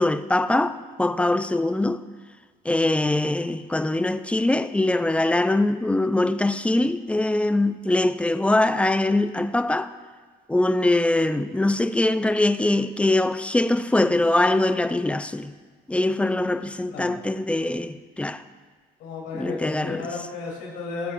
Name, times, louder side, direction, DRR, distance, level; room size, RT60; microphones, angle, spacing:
voice 1, 0.0-2.0 2.7-9.9 10.5-15.5 15.9-18.4 19.3-20.0, left 2 dB, 5° left, 0.4 m, -22 dB
voice 2, 19.0-21.1, left 4 dB, 90° left, 3.1 m, -33 dB
19.5 x 8.3 x 2.5 m
cardioid pair, 110°, 17 cm